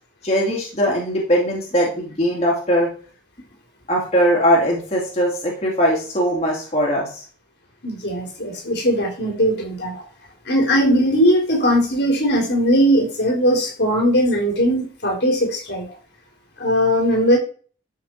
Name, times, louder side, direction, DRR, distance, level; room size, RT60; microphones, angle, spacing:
voice 1, 0.2-2.9 3.9-7.2, equal, 30° left, -3 dB, 2.6 m, -20 dB
voice 2, 7.8-10.0 10.5-15.9 16.6-17.4, equal, 55° left, 2 dB, 3.6 m, -19 dB
12.5 x 6.8 x 4.5 m, 0.41 s
head